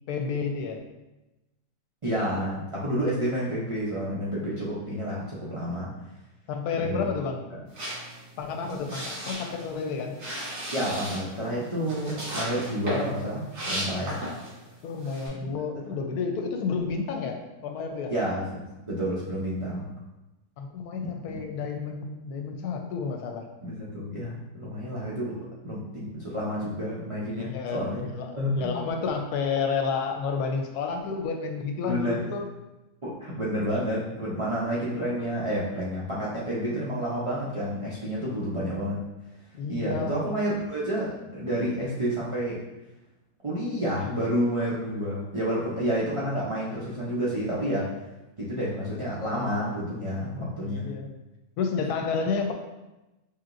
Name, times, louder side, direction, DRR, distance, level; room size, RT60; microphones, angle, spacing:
voice 1, 0.1-0.8 6.5-7.5 8.4-10.2 14.8-18.1 20.6-23.5 27.3-32.4 34.4-34.5 34.8-35.4 39.6-40.1 50.6-51.1 51.6-52.5, left 5 dB, 85° left, 4 dB, 1.1 m, -31 dB
voice 2, 2.0-5.9 6.7-7.1 7.5-7.6 8.6-8.8 10.7-14.2 15.4-15.5 18.1-18.4 18.9-19.9 21.0-21.4 23.6-28.0 28.4-28.8 31.9-32.2 33.0-39.0 39.7-42.6 43.4-48.0 48.4-50.9, equal, 50° right, -8 dB, 0.4 m, -30 dB
sound 1, 7.7-14.6 15.0-15.3, equal, 85° right, 2.1 m, -35 dB
4.9 x 2.8 x 2.5 m, 1.0 s
omnidirectional pair, 1.6 m